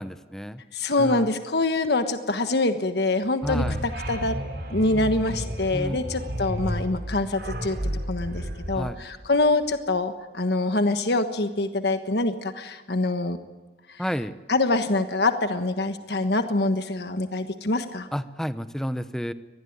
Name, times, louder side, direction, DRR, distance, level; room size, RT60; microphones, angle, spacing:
voice 1, 0.0-0.6 1.0-1.3 3.4-3.8 5.7-6.0 8.7-9.0 14.0-14.3 18.1-19.3, equal, 5° left, 12 dB, 0.8 m, -30 dB
voice 2, 0.7-4.4 4.7-7.8 8.1-13.4 13.9-14.0 14.5-18.1, left 2 dB, 70° left, 8 dB, 1.4 m, -25 dB
sound 1, 3.4-9.6, equal, 70° right, 5.3 m, -32 dB
24.0 x 19.5 x 9.5 m, 1.2 s
head